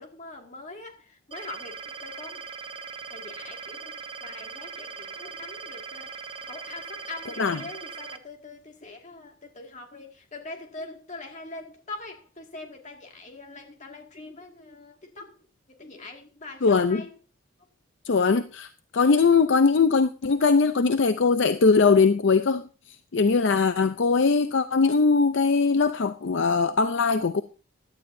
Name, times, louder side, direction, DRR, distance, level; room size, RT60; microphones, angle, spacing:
voice 1, 0.0-2.4 3.0-15.4 15.7-17.2, left 2 dB, 35° left, 2.1 m, -43 dB
sound 1, 1.3-8.2, right 5 dB, 25° right, 0.6 m, -40 dB
voice 2, 16.6-17.0 18.1-22.6 23.1-27.4, left 4 dB, 60° left, 0.5 m, -21 dB
16.0 x 11.5 x 2.7 m
head